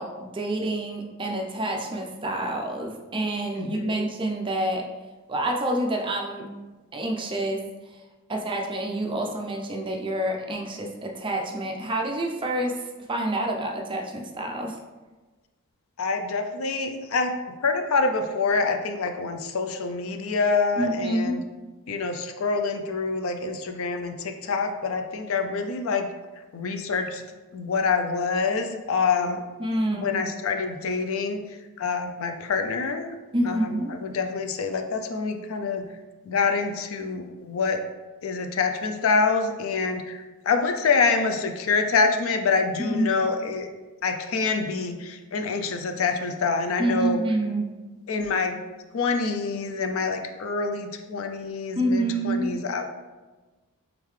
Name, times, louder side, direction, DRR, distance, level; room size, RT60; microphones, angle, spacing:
voice 1, 0.0-4.9 5.3-6.5 6.9-7.6 8.3-14.8 20.8-21.4 29.6-30.1 33.3-33.9 42.8-43.1 46.8-47.7 51.8-52.5, right 1 dB, 20° right, 1 dB, 0.4 m, -27 dB
voice 2, 3.6-3.9 16.0-17.3 17.6-21.4 21.9-26.1 26.5-27.2 27.5-29.4 29.9-33.1 33.4-35.8 36.2-37.8 38.2-43.7 44.0-47.2 48.1-48.6 48.9-52.8, left 4 dB, 65° left, 6 dB, 0.4 m, -26 dB
3.7 x 3.5 x 3.2 m, 1.2 s
head